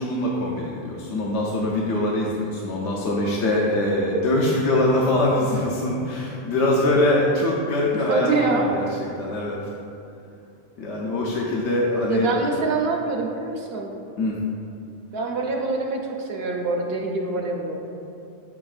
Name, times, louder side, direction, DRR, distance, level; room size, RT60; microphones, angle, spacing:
voice 1, 0.0-8.8 9.2-9.7 10.8-12.7 14.2-14.3, left 1 dB, 70° left, -4 dB, 1.0 m, -23 dB
voice 2, 7.9-8.8 12.1-14.0 15.1-17.8, right 3 dB, 60° right, 0 dB, 0.8 m, -25 dB
7.3 x 6.0 x 2.4 m, 2.6 s
omnidirectional pair, 1.3 m